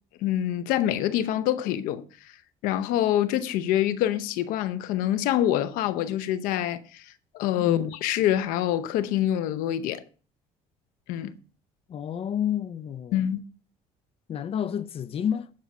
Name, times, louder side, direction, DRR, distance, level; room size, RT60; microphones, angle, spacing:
voice 1, 0.2-2.0 2.6-7.0 7.3-10.0 11.1-11.3 13.1-13.4, left 12 dB, 85° left, 0.8 m, -26 dB
voice 2, 7.6-7.9 11.9-13.2 14.3-15.5, left 9 dB, 45° left, 0.6 m, -30 dB
10.5 x 5.5 x 6.0 m
cardioid pair, 105°, 14 cm